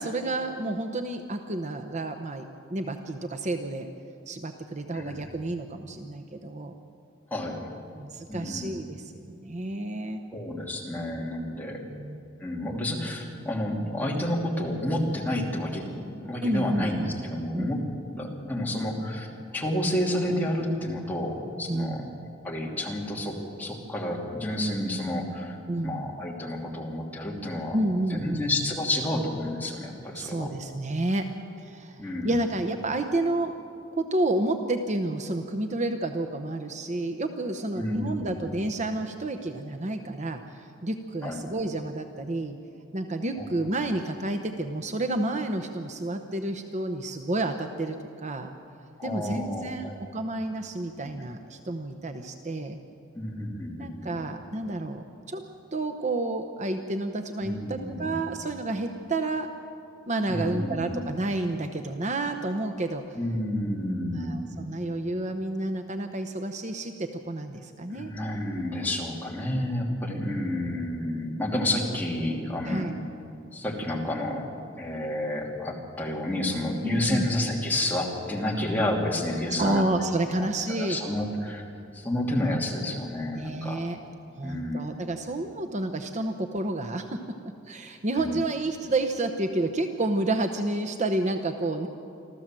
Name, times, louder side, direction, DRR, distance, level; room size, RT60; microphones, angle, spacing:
voice 1, 0.0-3.9 4.3-6.7 7.9-10.2 11.9-12.2 16.4-16.9 17.5-17.7 21.7-22.1 25.7-26.1 27.7-28.4 30.2-31.3 31.6-33.6 33.9-42.6 42.9-48.0 48.2-48.5 49.0-52.8 53.8-55.4 55.7-59.5 60.1-63.2 64.1-68.1 70.2-70.4 72.7-72.9 76.8-77.3 79.6-81.0 83.3-84.0 84.4-87.2 87.7-91.9, right 2 dB, 35° right, 7 dB, 0.9 m, -30 dB
voice 2, 7.3-7.7 8.3-8.7 10.3-11.8 12.4-17.8 18.1-19.3 19.5-22.0 22.4-25.6 25.8-27.8 28.1-30.5 32.0-32.4 37.8-38.4 41.2-41.4 43.4-43.5 49.0-49.9 53.1-54.2 57.4-58.2 60.3-61.1 63.2-64.4 67.9-72.9 73.5-74.5 74.8-79.8 80.3-80.5 80.8-81.6 81.9-83.8 84.4-85.1 88.2-88.4, left 1 dB, 10° left, -2 dB, 2.8 m, -30 dB
26.5 x 14.0 x 7.6 m, 2.5 s
head